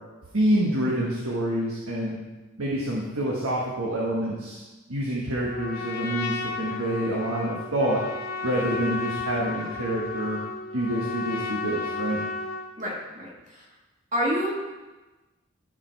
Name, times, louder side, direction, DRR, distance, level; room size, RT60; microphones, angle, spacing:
voice 1, 0.3-2.2 2.6-4.6 4.9-8.0 8.4-10.4 10.7-12.2, right 1 dB, 85° right, -4 dB, 1.4 m, -27 dB
Trumpet, 5.4-12.7, left 3 dB, 45° left, 0.9 m, -33 dB
voice 2, 12.8-13.7 14.1-14.5, equal, 35° right, -3 dB, 1.7 m, -28 dB
14.0 x 5.0 x 4.6 m, 1.2 s
head